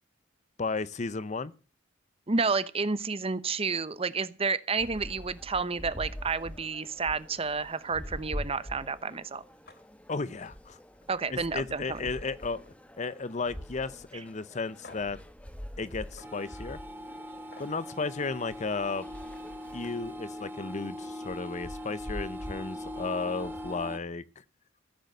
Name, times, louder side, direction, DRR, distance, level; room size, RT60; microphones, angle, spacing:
voice 1, 0.6-1.5 10.1-10.8 11.3-12.6 13.0-15.2 15.8-16.8 17.6-19.0 19.7-24.2, left 4 dB, 40° left, 0.7 m, -34 dB
voice 2, 2.3-9.4 11.1-12.0, right 4 dB, 30° right, 0.8 m, -30 dB
sound 1, 4.8-23.8, equal, 5° left, 1.1 m, -45 dB
sound 2, 9.6-9.8 10.2-10.5 10.9-11.1 11.5-12.7 13.0-13.4 13.8-13.9 14.8-15.2 16.2-16.3 17.5-17.7 19.4-19.5 19.8-20.1, left 3 dB, 55° left, 3.0 m, -53 dB
sound 3, 16.2-24.0, left 1 dB, 10° right, 1.5 m, -41 dB
15.0 x 7.9 x 7.8 m
head